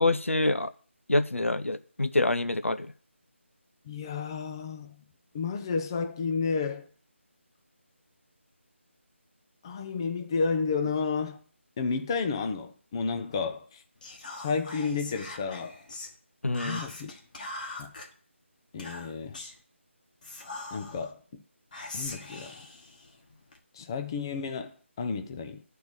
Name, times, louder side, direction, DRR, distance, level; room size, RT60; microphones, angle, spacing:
voice 1, 0.0-0.7 1.1-2.9 16.4-16.8, left 2 dB, 80° left, 0.7 m, -26 dB
voice 2, 3.9-5.0 5.3-6.9 9.6-11.4 11.8-13.8 14.4-15.8 16.6-17.1 17.8-17.9 18.7-19.4 20.7-21.4 21.9-22.5 23.7-25.6, left 5 dB, 20° left, 0.6 m, -31 dB
Whispering, 14.0-16.1 16.5-18.1 18.8-19.6 20.2-21.1 21.7-23.6, left 2 dB, 40° left, 1.5 m, -41 dB
10.5 x 4.6 x 8.0 m
figure-of-eight pair, 160°, 7 cm